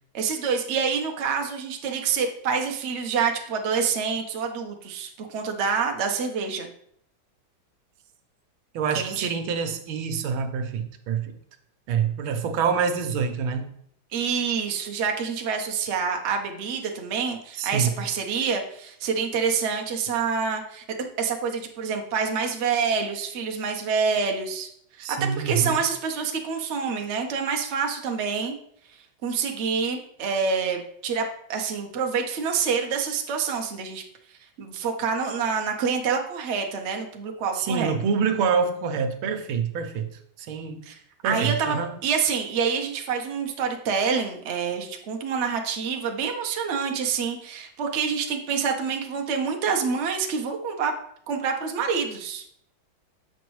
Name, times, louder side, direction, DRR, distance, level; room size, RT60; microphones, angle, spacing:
voice 1, 0.1-6.7 8.9-9.3 14.1-20.8 21.2-24.7 25.0-28.5 29.2-34.0 34.6-37.9 40.9-41.0 41.2-41.8 42.0-50.9 51.3-52.4, right 6 dB, 65° right, 3 dB, 0.6 m, -27 dB
voice 2, 8.7-11.3 11.9-13.7 17.6-17.9 25.0-25.8 37.5-40.1 40.4-40.8 41.2-42.0, right 6 dB, 80° right, 7 dB, 1.5 m, -26 dB
7.0 x 5.2 x 3.1 m, 0.67 s
omnidirectional pair, 2.2 m